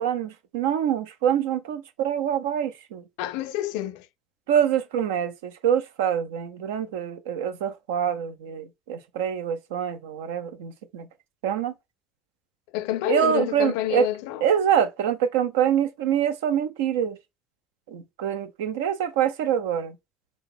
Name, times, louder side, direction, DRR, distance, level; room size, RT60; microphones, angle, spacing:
voice 1, 0.0-3.0 4.5-11.1 11.4-11.7 13.1-14.1 14.4-17.2 17.9-20.0, right 9 dB, 80° right, 0.6 m, -25 dB
voice 2, 3.2-4.1 12.7-14.4, left 13 dB, 75° left, 0.3 m, -28 dB
3.8 x 3.5 x 3.4 m
hypercardioid pair, 55°, 0 cm